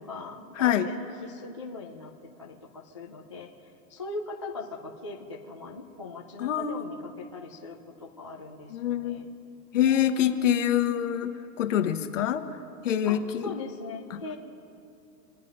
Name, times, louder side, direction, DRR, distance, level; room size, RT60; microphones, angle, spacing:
voice 1, 0.0-2.1 2.4-3.5 3.9-9.3 9.8-10.7 13.0-14.3, left 3 dB, 20° left, -3 dB, 0.4 m, -39 dB
voice 2, 0.6-0.9 6.4-6.9 8.7-9.3 9.7-12.4 12.8-13.5 14.1-14.2, left 10 dB, 50° left, 8 dB, 1.2 m, -26 dB
27.0 x 9.2 x 5.4 m, 2.7 s
hypercardioid pair, 160°, 49 cm